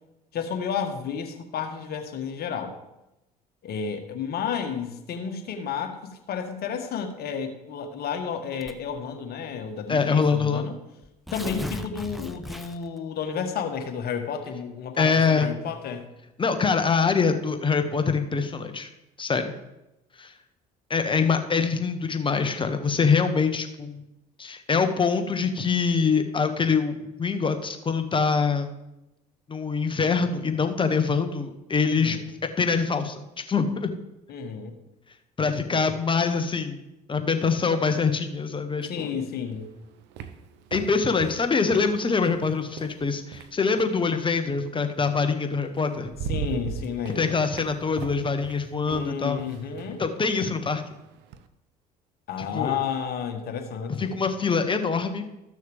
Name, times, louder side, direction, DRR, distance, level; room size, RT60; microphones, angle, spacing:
voice 1, 0.3-2.7 3.6-6.0 6.3-10.8 11.3-16.0 31.8-32.2 34.3-34.7 38.8-39.7 46.3-47.4 48.8-50.0 52.3-54.2, left 7 dB, 55° left, 5 dB, 1.5 m, -31 dB
Tearing, 8.6-9.0 9.9-10.0 10.3-10.4 11.0-13.0, left 1 dB, ahead, 0.8 m, -36 dB
voice 2, 9.9-10.7 15.0-15.5 16.4-18.9 19.2-19.5 20.2-20.3 20.9-24.0 24.4-28.7 29.5-33.9 35.4-36.8 37.1-39.1 40.7-46.1 47.1-49.4 50.0-50.8 52.4-52.7 54.0-55.3, left 5 dB, 25° left, 8 dB, 1.2 m, -24 dB
sound 1, 39.5-44.0 45.3-45.4 45.8-51.5, right 7 dB, 60° right, 0.7 m, -39 dB
14.0 x 6.4 x 3.5 m, 0.92 s
hypercardioid pair, 60°, 20 cm